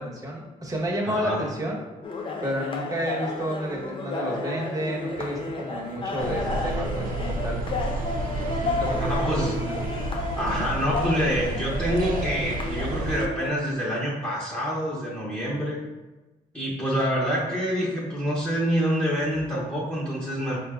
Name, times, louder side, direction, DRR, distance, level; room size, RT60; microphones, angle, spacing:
voice 1, 0.0-1.8 2.4-7.6 8.6-9.8, equal, 25° right, -2 dB, 1.1 m, -31 dB
voice 2, 1.0-1.4 9.1-9.6 10.4-15.8 16.5-20.6, equal, 10° left, -7 dB, 1.0 m, -26 dB
sound 1, 2.0-13.5, left 3 dB, 35° left, 0.6 m, -32 dB
sound 2, 6.2-13.3, right 2 dB, 65° right, 0.4 m, -31 dB
4.3 x 2.3 x 3.6 m, 1.1 s
cardioid pair, 80°, 15 cm